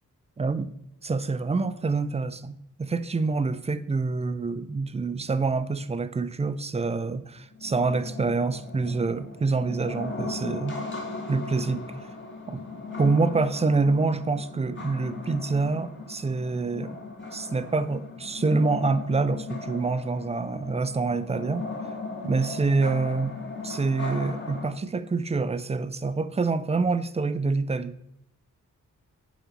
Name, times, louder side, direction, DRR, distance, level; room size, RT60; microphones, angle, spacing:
voice 1, 0.4-0.7 1.0-10.8 11.3-12.0 12.5-12.6 13.0-17.0 17.3-21.7 22.2-23.4 23.6-28.0, right 3 dB, 20° right, 12 dB, 0.3 m, -26 dB
sound 1, 7.5-24.7, left 3 dB, 35° left, 1.4 m, -37 dB
8.8 x 4.1 x 4.5 m, 0.79 s
wide cardioid pair, 160°, 33 cm